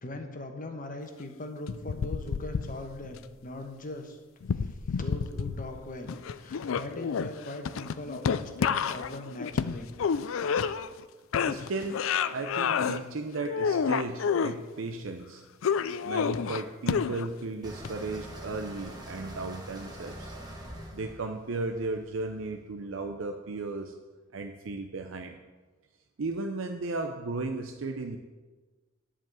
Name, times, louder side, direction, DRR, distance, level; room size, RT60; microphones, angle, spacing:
voice 1, 0.0-4.2 4.6-6.1 6.4-9.9, left 2 dB, 45° left, 5 dB, 1.2 m, -40 dB
sound 1, 1.7-3.2 4.4-5.8 6.1-11.0 11.3-13.0 13.4-14.5 15.6-17.4 17.8-17.9, left 6 dB, 90° left, 0.4 m, -29 dB
voice 2, 11.5-15.4 16.0-20.3 20.9-23.9 24.3-25.4 26.2-28.2, right 3 dB, 85° right, 5 dB, 0.6 m, -35 dB
sound 2, 17.6-22.6, right 1 dB, 20° right, 1.5 m, -44 dB
10.5 x 5.1 x 7.5 m, 1.3 s
head